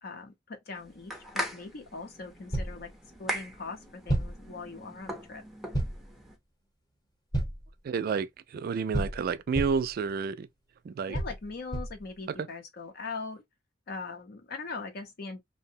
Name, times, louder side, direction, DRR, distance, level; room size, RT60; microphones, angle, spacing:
voice 1, 0.0-2.9 3.2-5.4 11.1-13.4 13.9-15.4, left 4 dB, 55° left, 0.6 m, -41 dB
sound 1, 0.8-6.4, equal, ahead, 0.5 m, -40 dB
sound 2, 2.5-2.9 4.1-4.5 5.7-6.1 7.3-7.7 8.9-9.9 11.1-12.0, right 1 dB, 20° left, 0.9 m, -31 dB
voice 2, 7.8-10.5 10.8-11.2 12.4-12.5, right 5 dB, 50° right, 0.3 m, -30 dB
2.7 x 2.0 x 2.6 m
head